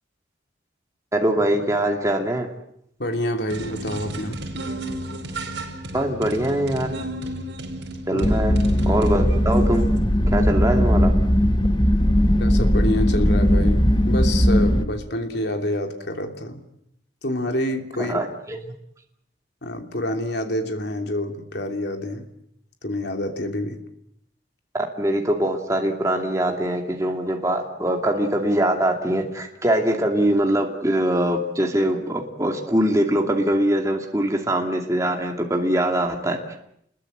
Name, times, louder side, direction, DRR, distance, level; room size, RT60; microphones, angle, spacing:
voice 1, 1.1-2.5 5.9-6.9 8.1-8.5 8.9-9.9 10.3-11.1 18.0-18.6 24.7-36.6, right 1 dB, 15° right, 2 dB, 2.5 m, -23 dB
voice 2, 3.0-4.4 8.1-8.3 12.1-16.6 17.2-18.2 19.6-22.3 22.8-23.8, left 1 dB, 60° left, 4 dB, 3.1 m, -27 dB
sound 1, 3.5-10.0, right 1 dB, 70° right, 4.8 m, -33 dB
sound 2, 8.2-14.9, equal, 25° left, 1.4 m, -18 dB
28.5 x 22.0 x 8.0 m, 0.74 s
head